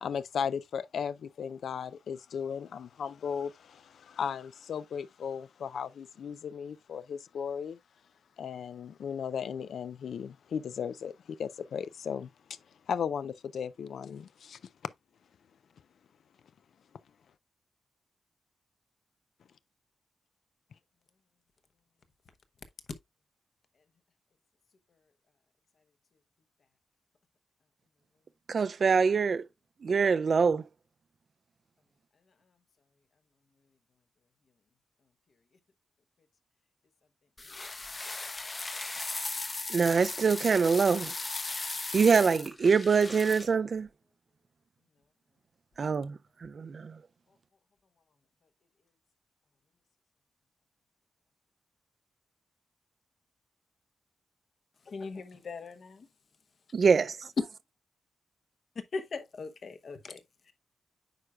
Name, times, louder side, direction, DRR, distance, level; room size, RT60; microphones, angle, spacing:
voice 1, 0.0-7.8 8.4-12.3 12.9-14.9, left 7 dB, 80° left, 0.3 m, -36 dB
voice 2, 28.5-29.4 29.8-30.6 39.7-41.1 41.9-43.9 45.8-46.9 56.7-57.2, right 5 dB, 45° right, 0.3 m, -24 dB
sound 1, 37.4-43.5, left 3 dB, 25° left, 0.7 m, -37 dB
voice 3, 54.8-56.1 57.4-57.5 58.7-60.5, left 4 dB, 50° left, 0.9 m, -38 dB
9.0 x 4.9 x 2.3 m
wide cardioid pair, 170°, 0 cm